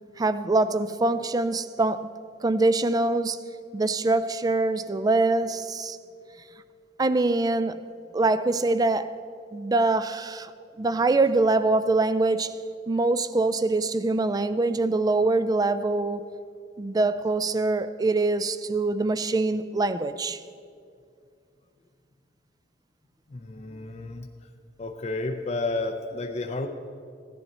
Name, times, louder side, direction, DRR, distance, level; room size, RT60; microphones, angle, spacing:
voice 1, 0.2-2.1 2.4-3.4 3.7-6.0 7.0-7.8 8.1-9.1 9.5-10.5 10.8-12.5 12.9-16.3 16.8-20.4, right 2 dB, 20° right, 0.4 m, -24 dB
voice 2, 23.3-24.3 24.8-26.7, left 2 dB, 40° left, 0.6 m, -31 dB
16.0 x 10.5 x 4.2 m
head